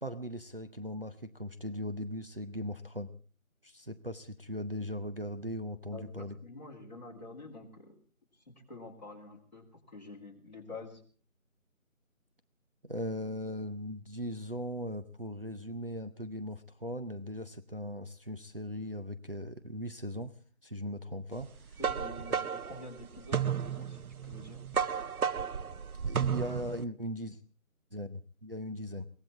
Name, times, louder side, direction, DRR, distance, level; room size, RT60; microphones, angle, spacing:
voice 1, 0.0-3.1 3.6-6.3 12.8-20.3 20.6-21.8 26.1-27.4 27.9-29.1, equal, 40° right, 8 dB, 0.8 m, -39 dB
voice 2, 5.9-7.9 8.5-11.0 21.8-24.7, left 2 dB, 30° left, -3 dB, 3.3 m, -48 dB
sound 1, 21.4-26.8, right 7 dB, 90° right, 0.8 m, -33 dB
22.5 x 17.5 x 3.6 m, 0.39 s
figure-of-eight pair, 180°, 42 cm